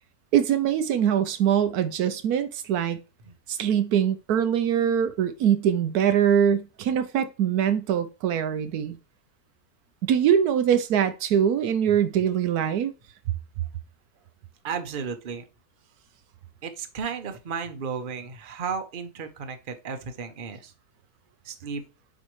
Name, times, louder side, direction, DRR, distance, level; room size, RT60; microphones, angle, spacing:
voice 1, 0.3-3.0 3.5-9.0 10.0-12.9, right 9 dB, 80° right, 1.2 m, -23 dB
voice 2, 14.6-15.4 16.6-20.7 21.4-21.8, right 6 dB, 40° right, 1.0 m, -34 dB
6.3 x 4.7 x 3.2 m
omnidirectional pair, 1.6 m